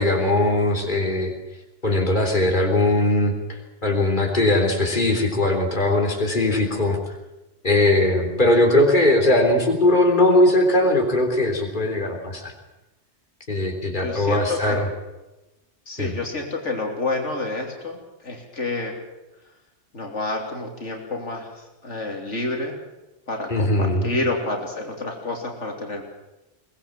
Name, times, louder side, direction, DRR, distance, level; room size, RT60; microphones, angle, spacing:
voice 1, 0.0-1.3 1.8-7.1 7.6-12.5 13.5-14.9 16.0-16.1 23.5-24.2, left 1 dB, 45° left, 2 dB, 3.7 m, -20 dB
voice 2, 14.0-14.8 15.9-18.9 19.9-21.5 21.8-22.8 23.3-26.0, left 2 dB, 90° left, 1 dB, 3.5 m, -29 dB
23.0 x 19.0 x 7.4 m, 1.0 s
omnidirectional pair, 1.2 m